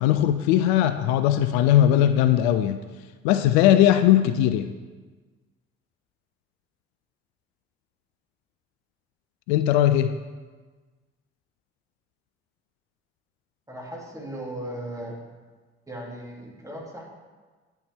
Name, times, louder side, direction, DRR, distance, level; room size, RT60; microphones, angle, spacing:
voice 1, 0.0-2.8 3.2-4.7 9.5-10.1, left 11 dB, 70° left, 11 dB, 0.5 m, -19 dB
voice 2, 13.7-15.2 15.9-17.0, right 1 dB, 10° right, -3 dB, 2.7 m, -37 dB
9.4 x 6.3 x 3.5 m, 1.4 s
figure-of-eight pair, 45°, 32 cm